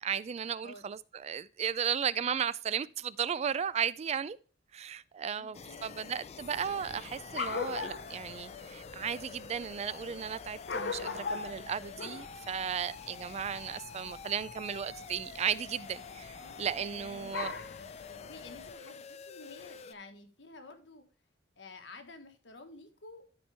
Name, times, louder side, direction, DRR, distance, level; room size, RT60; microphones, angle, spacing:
voice 1, 0.0-4.4 4.7-17.5, right 8 dB, 35° right, 0.3 m, -35 dB
voice 2, 5.4-6.1 16.4-17.4 18.1-21.0 21.6-23.2, left 3 dB, 90° left, 1.4 m, -51 dB
sound 1, 5.5-19.9, left 5 dB, 35° left, 0.4 m, -48 dB
sound 2, 6.5-18.7, left 5 dB, 65° left, 0.8 m, -42 dB
12.0 x 4.4 x 3.4 m
head